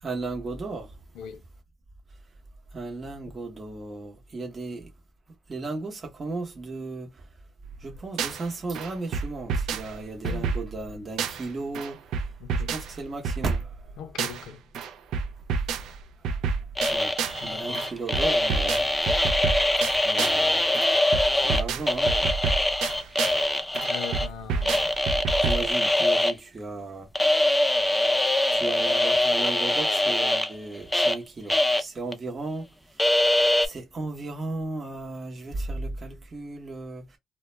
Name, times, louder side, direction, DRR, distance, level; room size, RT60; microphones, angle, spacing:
voice 1, 0.0-1.0 2.7-4.9 5.5-7.3 7.8-12.3 12.7-14.0 16.2-18.9 19.8-20.7 21.3-22.2 25.4-27.1 28.5-33.3 33.6-37.2, right 3 dB, 35° right, 0.8 m, -35 dB
sound 1, 7.6-8.5 8.7-11.5 11.7-14.5 14.7-17.5 17.7-20.5 20.7-23.5 23.7-25.7, right 5 dB, 85° right, 0.4 m, -30 dB
voice 2, 12.4-12.7 14.0-14.6 17.4-17.9 23.8-24.9, left 8 dB, 90° left, 0.5 m, -39 dB
sound 2, 16.8-21.6 21.9-24.3 24.6-26.3 27.1-31.2 31.5-31.8 32.1-32.2 33.0-33.7, left 1 dB, 10° left, 0.4 m, -23 dB
2.2 x 2.1 x 3.0 m
cardioid pair, 90°, 0 cm